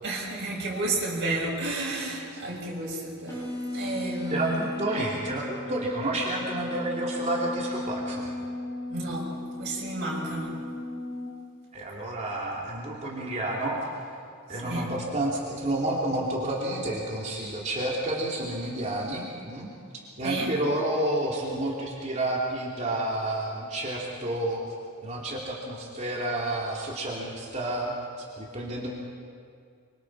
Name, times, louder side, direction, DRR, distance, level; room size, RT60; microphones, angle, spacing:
voice 1, 0.0-4.7 8.9-9.3 9.6-10.6 14.6-14.9 20.2-20.5, right 2 dB, 50° right, -4 dB, 6.6 m, -31 dB
sound 1, 3.3-11.3, left 2 dB, 15° left, 7.5 m, -36 dB
voice 2, 4.3-8.3 11.7-13.8 14.5-19.7 20.2-24.6 25.0-28.9, right 1 dB, 30° right, -4 dB, 2.9 m, -30 dB
25.0 x 24.5 x 4.8 m, 2.3 s
head